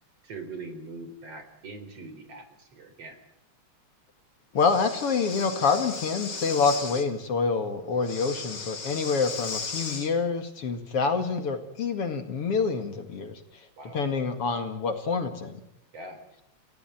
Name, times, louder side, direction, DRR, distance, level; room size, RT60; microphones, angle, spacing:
voice 1, 0.2-3.2 13.8-14.0 15.9-16.2, right 3 dB, 55° right, 8 dB, 4.8 m, -42 dB
voice 2, 4.5-13.4 13.9-15.6, left 5 dB, 55° left, 7 dB, 2.9 m, -27 dB
Breathing, 4.6-7.1 8.0-10.1, left 4 dB, 35° left, 2.9 m, -36 dB
30.0 x 16.5 x 9.3 m, 0.76 s
omnidirectional pair, 3.3 m